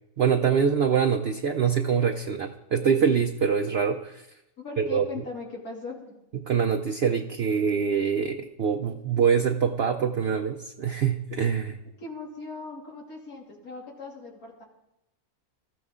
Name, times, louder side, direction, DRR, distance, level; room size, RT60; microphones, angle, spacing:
voice 1, 0.2-4.2 4.8-5.0 6.3-11.8, right 7 dB, 55° right, 4 dB, 0.9 m, -24 dB
voice 2, 4.6-6.2 12.0-14.6, left 4 dB, 85° left, -3 dB, 3.4 m, -39 dB
18.5 x 14.0 x 3.7 m, 0.87 s
omnidirectional pair, 1.5 m